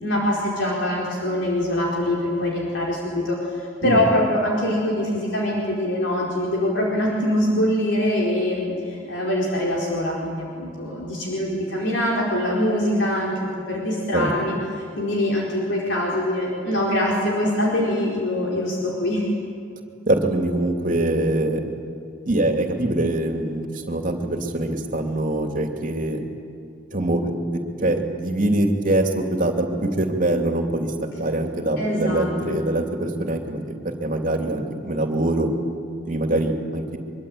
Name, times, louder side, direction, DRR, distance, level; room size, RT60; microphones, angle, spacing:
voice 1, 0.0-19.3 31.8-32.6, left 1 dB, 65° left, -3 dB, 4.7 m, -23 dB
voice 2, 20.1-21.6 22.3-26.2 26.9-30.9 31.2-35.5 36.0-37.0, right 1 dB, 45° right, 4 dB, 2.8 m, -23 dB
24.5 x 24.0 x 8.8 m, 2.6 s
head